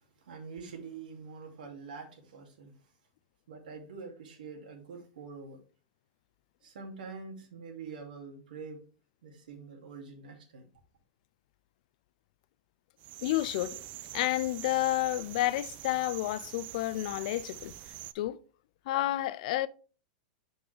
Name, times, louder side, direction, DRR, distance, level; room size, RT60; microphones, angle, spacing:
voice 1, 0.2-2.7 3.5-5.6 6.6-8.8 9.2-10.7, right 5 dB, 90° right, 2.3 m, -45 dB
sound 1, 13.0-18.1, right 15 dB, 35° right, 0.4 m, -45 dB
voice 2, 13.2-13.8 14.1-17.7 18.1-18.4 18.9-19.7, left 16 dB, 60° left, 0.4 m, -30 dB
6.0 x 5.2 x 3.3 m
supercardioid pair, 145°, 5 cm